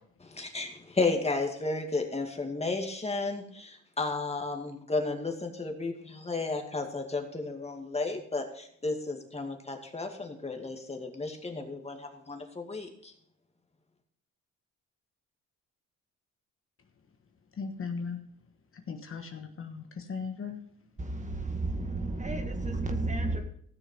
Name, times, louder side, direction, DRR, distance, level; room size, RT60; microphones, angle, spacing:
voice 1, 0.3-13.1, left 3 dB, 20° left, 2.2 m, -33 dB
voice 2, 17.5-18.2 18.7-20.6, left 5 dB, 45° left, 1.4 m, -37 dB
voice 3, 21.0-23.4, right 2 dB, 25° right, 1.9 m, -32 dB
15.0 x 6.7 x 5.4 m
cardioid pair, 90°, 30 cm